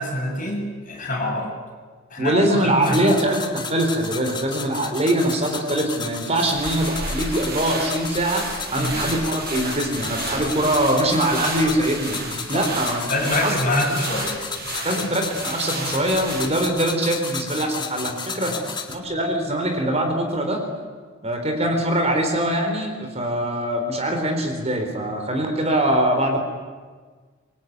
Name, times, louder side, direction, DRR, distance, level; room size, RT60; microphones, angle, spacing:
voice 1, 0.0-1.5 2.1-3.2 8.8-9.0 12.5-12.7 13.1-14.3 18.5-18.7, left 1 dB, 40° left, 0 dB, 6.9 m, -25 dB
voice 2, 2.2-12.2 12.5-13.0 13.3-13.5 14.8-18.6 18.9-20.6 21.2-26.4, right 1 dB, 30° right, 4 dB, 3.9 m, -23 dB
sound 1, 2.8-19.0, left 5 dB, 25° left, 2.1 m, -34 dB
sound 2, 6.1-16.8, right 2 dB, 50° right, 7.1 m, -32 dB
25.0 x 22.5 x 9.4 m, 1.5 s
head